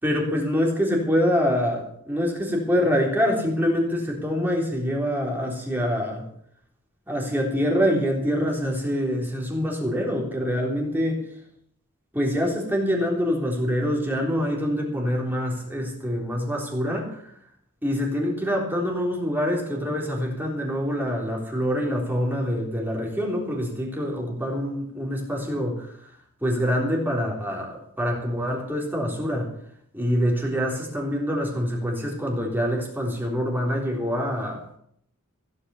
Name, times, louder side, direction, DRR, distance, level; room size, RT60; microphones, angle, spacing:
voice 1, 0.0-6.3 7.1-11.3 12.1-17.4 17.8-29.5 29.9-34.6, equal, 10° right, -1 dB, 3.7 m, -25 dB
16.5 x 9.8 x 7.1 m, 0.68 s
head